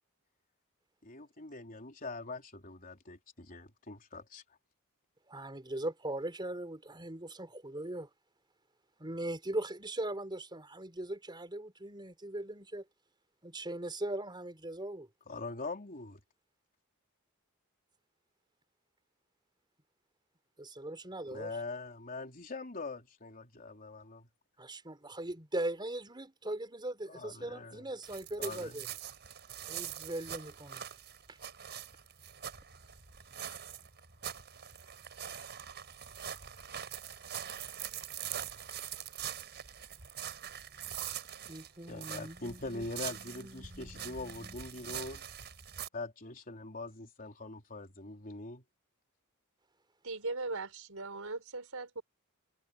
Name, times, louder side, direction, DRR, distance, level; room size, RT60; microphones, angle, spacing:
voice 1, 1.0-4.4 15.3-16.2 21.3-24.3 27.1-27.9 28.4-29.0 41.9-45.2 45.9-48.6, left 3 dB, 40° left, 3.9 m, -43 dB
voice 2, 5.3-8.1 9.0-12.8 13.4-15.1 20.6-21.5 24.6-28.9 29.7-30.8 41.5-42.9 43.1-45.0, right 1 dB, 20° right, 4.7 m, -40 dB
sound 1, 28.0-45.9, right 9 dB, 50° right, 5.3 m, -43 dB
voice 3, 50.0-52.0, right 3 dB, 70° right, 5.7 m, -39 dB
head